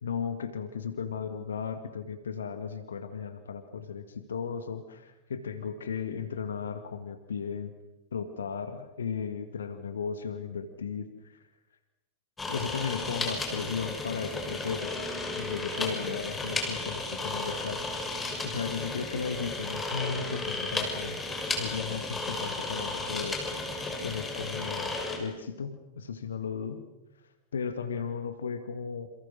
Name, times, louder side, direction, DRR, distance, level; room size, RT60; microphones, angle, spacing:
voice 1, 0.0-7.7 8.1-11.4 12.5-15.1 15.4-17.9 18.4-21.2 21.6-23.4 23.7-26.9 27.5-29.1, left 6 dB, 70° left, 9 dB, 1.9 m, -35 dB
sound 1, 12.4-25.2, left 2 dB, 15° left, 6.4 m, -34 dB
28.5 x 28.0 x 6.4 m, 1.0 s
figure-of-eight pair, 90°, 0 cm